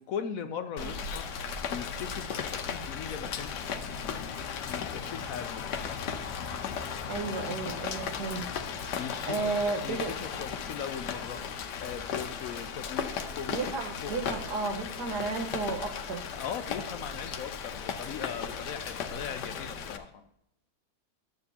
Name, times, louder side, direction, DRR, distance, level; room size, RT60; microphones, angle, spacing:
voice 1, 0.0-3.8 4.7-5.8 8.9-9.5 9.8-11.4 11.8-13.1 13.4-13.7 14.0-14.1 16.3-20.2, left 7 dB, 65° left, 8 dB, 0.9 m, -39 dB
Rain, 0.8-20.0, left 6 dB, 85° left, 1.4 m, -36 dB
voice 2, 7.1-8.5 8.8-8.9 9.3-10.1 13.5-16.2, right 4 dB, 75° right, 4 dB, 1.7 m, -33 dB
11.5 x 7.8 x 2.8 m, 0.77 s
omnidirectional pair, 1.8 m